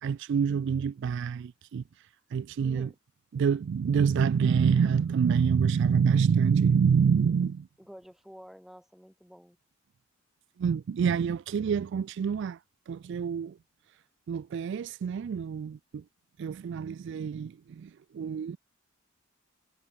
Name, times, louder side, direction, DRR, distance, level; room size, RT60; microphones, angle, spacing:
voice 1, 0.0-1.8 2.3-2.9 3.3-7.7 10.6-12.6 12.9-13.6 14.3-16.0 16.4-18.6, right 6 dB, 60° right, 0.3 m, -26 dB
voice 2, 2.6-3.0 7.8-9.6, equal, ahead, 2.4 m, -49 dB
head